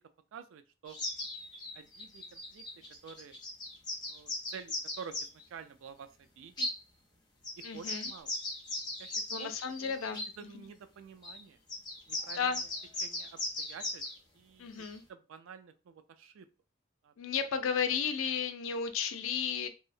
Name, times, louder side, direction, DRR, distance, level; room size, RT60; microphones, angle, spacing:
voice 1, 0.3-1.0 1.7-2.6 3.0-3.4 4.1-6.7 7.6-8.4 9.0-9.5 9.8-11.6 12.1-12.7 13.0-14.0 14.3-14.7 15.1-16.5 17.0-17.1, right 6 dB, 80° right, 10 dB, 0.3 m, -49 dB
sound 1, 0.9-5.4 6.6-6.8 7.4-10.3 11.2-11.4 11.7-14.2 14.8-15.0, left 2 dB, 20° left, 0.5 m, -38 dB
voice 2, 7.6-8.1 9.3-10.7 12.4-12.6 14.6-15.0 17.2-19.7, left 6 dB, 85° left, 9 dB, 0.4 m, -33 dB
2.7 x 2.0 x 2.4 m, 0.30 s
head